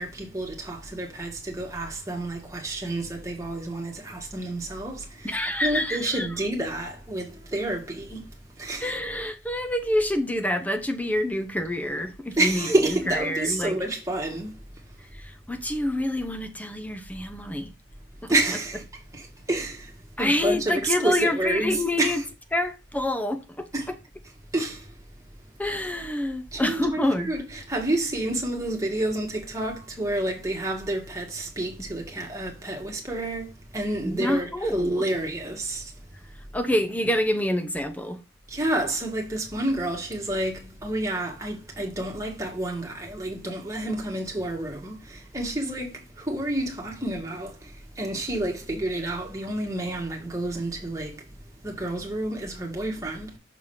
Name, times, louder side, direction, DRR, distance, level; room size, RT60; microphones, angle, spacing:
voice 1, 0.0-8.9 12.4-14.6 18.3-18.8 19.1-22.3 23.7-23.9 24.5-25.0 26.5-35.9 38.5-51.3 51.6-53.4, right 1 dB, 15° right, 1.8 m, -29 dB
voice 2, 5.2-6.4 8.8-13.8 15.1-17.7 18.2-18.8 20.2-24.0 25.6-27.3 34.0-35.1 36.5-38.2, left 1 dB, 10° left, 0.6 m, -27 dB
6.5 x 3.7 x 5.5 m
head